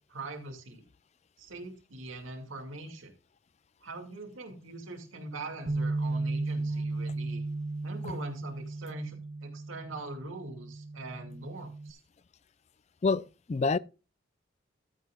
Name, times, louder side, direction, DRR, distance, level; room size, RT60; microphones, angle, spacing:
voice 1, 0.1-0.8 1.4-3.1 3.8-7.4 7.8-12.0, right 2 dB, 90° right, 2.5 m, -42 dB
Bass guitar, 5.7-11.9, right 2 dB, 35° right, 0.7 m, -35 dB
voice 2, 13.0-13.8, left 4 dB, 35° left, 0.3 m, -27 dB
13.0 x 9.1 x 2.4 m
head